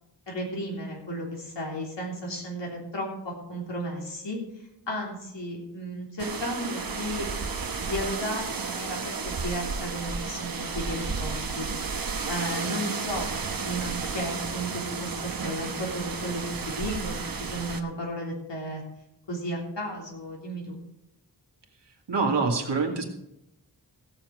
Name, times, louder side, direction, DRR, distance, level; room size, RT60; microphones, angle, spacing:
voice 1, 0.3-4.4 4.9-7.3 7.8-11.7 12.3-13.3 13.6-18.8 19.3-20.8, equal, 90° left, -2 dB, 3.5 m, -34 dB
sound 1, 6.2-17.8, right 5 dB, 55° right, 1.1 m, -32 dB
voice 2, 22.1-23.0, right 4 dB, 75° right, 1 dB, 2.2 m, -25 dB
16.0 x 7.5 x 4.9 m, 0.85 s
wide cardioid pair, 75°, 42 cm